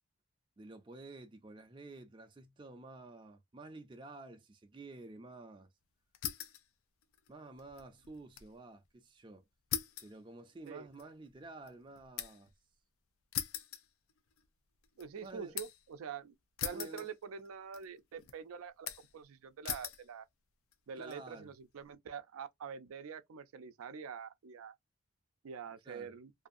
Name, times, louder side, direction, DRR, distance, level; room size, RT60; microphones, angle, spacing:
voice 1, 0.6-5.7 7.3-9.4 10.0-12.5 15.2-15.6 16.7-17.1 21.0-21.5 25.9-26.1, right 2 dB, 25° right, 0.4 m, -51 dB
sound 1, 6.1-6.7 7.0-8.5 8.9-9.0 9.7-12.5 13.3-14.5 14.8-15.9 16.6-17.5 17.7-18.3 18.9-19.2 19.6-20.1 20.7-21.2, left 10 dB, 80° left, 0.4 m, -41 dB
voice 2, 15.0-16.3 16.6-20.3 20.9-24.7 25.4-26.3, right 6 dB, 80° right, 0.4 m, -46 dB
2.6 x 2.5 x 2.4 m
head